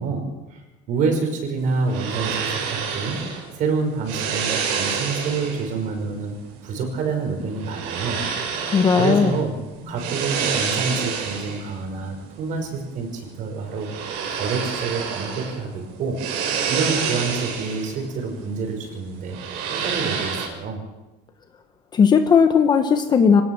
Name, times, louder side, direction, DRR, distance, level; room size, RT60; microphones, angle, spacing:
voice 1, 0.0-3.3 3.5-8.3 9.0-9.6 9.9-13.9 14.3-16.3 16.7-19.4 19.8-20.8, right 4 dB, 40° right, 4 dB, 5.6 m, -27 dB
sound 1, 1.6-20.5, right 6 dB, 75° right, 6.5 m, -29 dB
voice 2, 8.7-9.3 21.9-23.4, left 6 dB, 20° left, 7 dB, 1.0 m, -16 dB
25.5 x 18.5 x 7.3 m, 1.1 s
cardioid pair, 180°, 20 cm